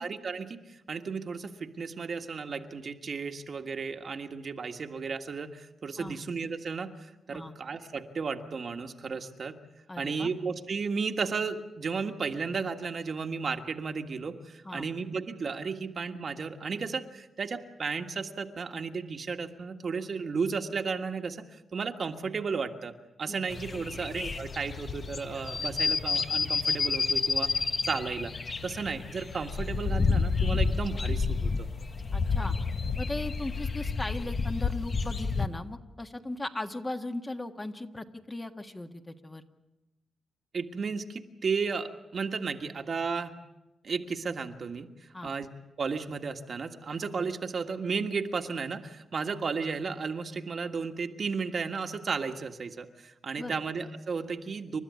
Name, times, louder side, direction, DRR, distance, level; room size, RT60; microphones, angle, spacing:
voice 1, 0.0-9.6 10.0-22.9 23.2-27.5 27.8-28.3 28.6-31.7 40.5-43.3 43.8-44.9 45.2-45.5 45.8-54.8, right 5 dB, 50° right, 5 dB, 1.6 m, -34 dB
voice 2, 9.9-10.3 14.6-14.8 23.3-23.4 23.7-23.8 32.1-32.6 33.0-39.4 45.1-45.3 53.4-53.6, left 2 dB, 20° left, 5 dB, 1.6 m, -38 dB
sound 1, 23.5-35.5, left 4 dB, 40° left, 1.2 m, -30 dB
29.0 x 13.0 x 9.6 m, 1.0 s
cardioid pair, 85°, 0 cm